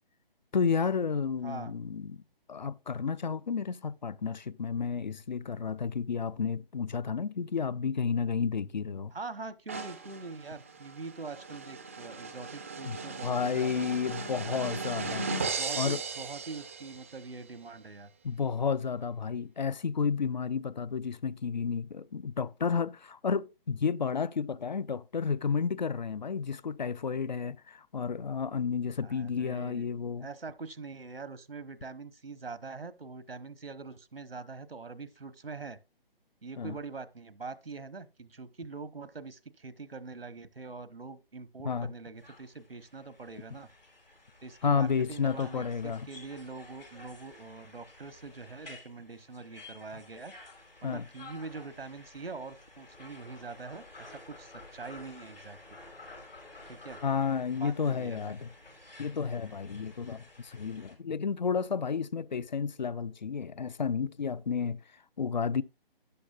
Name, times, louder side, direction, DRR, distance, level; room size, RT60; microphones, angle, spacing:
voice 1, 0.5-2.2 2.5-9.1 12.9-13.0 13.2-15.3 15.8-16.0 18.2-30.3 36.6-36.8 41.6-41.9 44.6-46.1 50.8-51.1 57.0-58.5 59.0-64.8 65.2-65.6, left 6 dB, 50° left, 0.4 m, -31 dB
voice 2, 9.1-14.8 15.6-18.1 29.0-29.8 30.2-35.8 36.4-43.7 44.4-50.3 50.8-55.6 56.7-57.0 57.5-58.4, right 4 dB, 80° right, 1.1 m, -44 dB
sound 1, 9.7-17.3, right 4 dB, 15° right, 0.5 m, -37 dB
sound 2, 42.2-60.9, left 2 dB, 75° left, 5.8 m, -52 dB
12.5 x 9.5 x 2.4 m
figure-of-eight pair, 145°, 29 cm